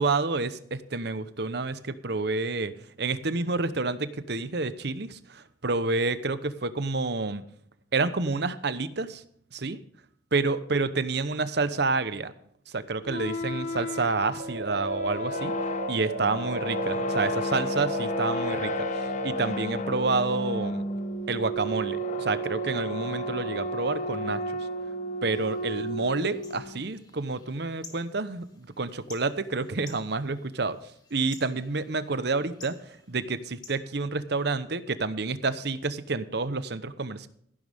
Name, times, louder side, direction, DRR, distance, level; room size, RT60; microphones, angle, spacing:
voice 1, 0.0-7.4 7.9-9.2 9.5-9.8 10.3-12.3 12.7-15.5 15.9-20.8 21.3-24.4 25.2-30.8 31.1-37.3, right 3 dB, 60° right, 13 dB, 1.0 m, -29 dB
sound 1, 13.0-26.8, equal, 40° left, 1.2 m, -32 dB
sound 2, 14.4-19.4, right 2 dB, 80° right, 1.6 m, -34 dB
sound 3, 25.3-34.7, left 4 dB, 25° left, 2.6 m, -53 dB
15.0 x 11.5 x 3.6 m, 0.67 s
head